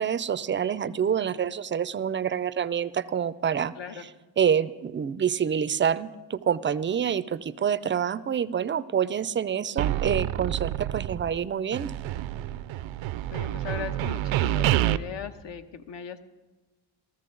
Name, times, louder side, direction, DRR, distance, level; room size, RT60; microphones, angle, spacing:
voice 1, 0.0-3.7 4.4-11.9, right 8 dB, 25° right, 16 dB, 0.4 m, -27 dB
voice 2, 3.7-4.1 13.3-16.2, left 8 dB, 65° left, 8 dB, 1.0 m, -38 dB
sound 1, 9.8-11.4 11.7-15.0, right 13 dB, 75° right, 0.5 m, -28 dB
15.0 x 14.0 x 3.8 m, 1.2 s
cardioid pair, 85°, 47 cm